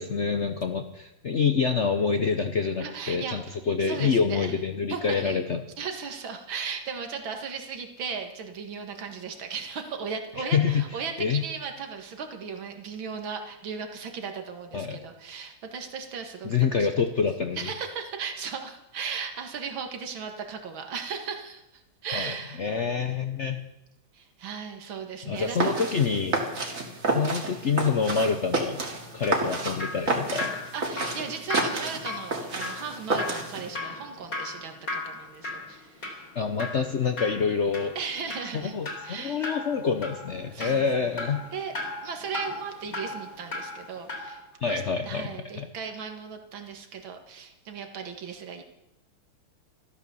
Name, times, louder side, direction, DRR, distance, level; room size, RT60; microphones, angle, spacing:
voice 1, 0.0-5.7 10.4-10.8 11.2-11.4 14.7-15.0 16.4-17.7 22.1-23.6 25.3-26.4 27.1-28.8 29.1-30.5 36.3-37.9 38.5-41.4 44.6-45.7, left 5 dB, 60° left, 7 dB, 0.7 m, -27 dB
voice 2, 2.8-4.5 4.9-5.4 5.8-16.9 17.6-22.6 24.1-25.8 26.1-26.3 30.7-36.3 38.0-38.7 39.0-39.5 40.5-40.9 41.5-41.7 42.0-48.6, right 6 dB, 70° right, 4 dB, 2.5 m, -36 dB
sound 1, 25.4-33.7, right 2 dB, 40° right, 2.6 m, -30 dB
Drip, 28.9-44.4 44.7-44.8, left 2 dB, 40° left, 3.5 m, -37 dB
13.5 x 13.0 x 7.0 m, 0.89 s
omnidirectional pair, 2.3 m